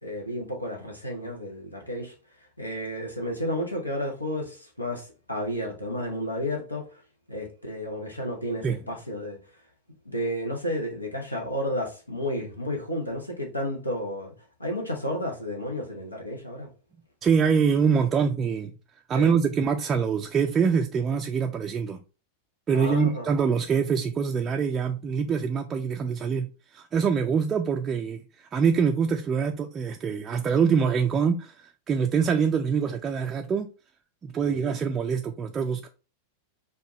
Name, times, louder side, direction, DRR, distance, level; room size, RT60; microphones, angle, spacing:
voice 1, 0.0-2.1 2.6-7.0 7.3-9.4 10.0-14.3 14.6-16.7 19.1-19.4 22.7-23.3 34.4-34.7, left 1 dB, 85° left, 0.9 m, -32 dB
voice 2, 17.2-18.7 19.1-22.0 22.7-33.7 34.2-35.9, right 6 dB, 25° right, 0.3 m, -25 dB
4.6 x 2.5 x 2.9 m
figure-of-eight pair, 90°, 0 cm